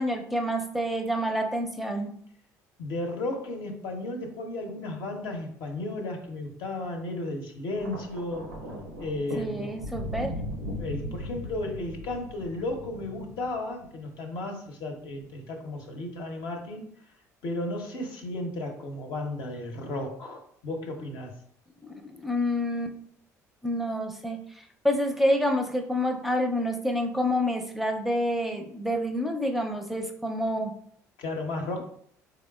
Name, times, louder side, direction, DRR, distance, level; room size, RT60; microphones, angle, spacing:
voice 1, 0.0-2.1 9.4-10.3 21.8-23.0 23.6-24.4 24.8-30.7, equal, ahead, 4 dB, 0.6 m, -28 dB
voice 2, 2.8-8.5 9.0-9.7 10.8-16.8 17.4-21.3 31.2-31.8, left 2 dB, 60° left, 2 dB, 0.7 m, -34 dB
Thunder, 7.7-14.1 15.1-15.3, equal, 90° right, 0.5 m, -38 dB
3.9 x 3.5 x 2.3 m, 0.63 s
hypercardioid pair, 55°, 9 cm